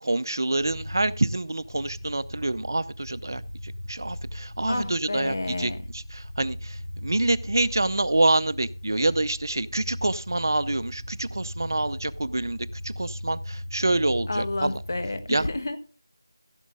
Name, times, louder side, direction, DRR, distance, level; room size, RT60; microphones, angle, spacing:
voice 1, 0.0-14.8 15.3-15.4, right 2 dB, 55° right, 0.6 m, -27 dB
sound 1, 0.5-15.2, left 1 dB, 70° left, 6.4 m, -38 dB
voice 2, 4.7-5.8 14.3-15.8, left 2 dB, 45° left, 1.2 m, -30 dB
15.5 x 6.3 x 3.7 m
figure-of-eight pair, 175°, 2 cm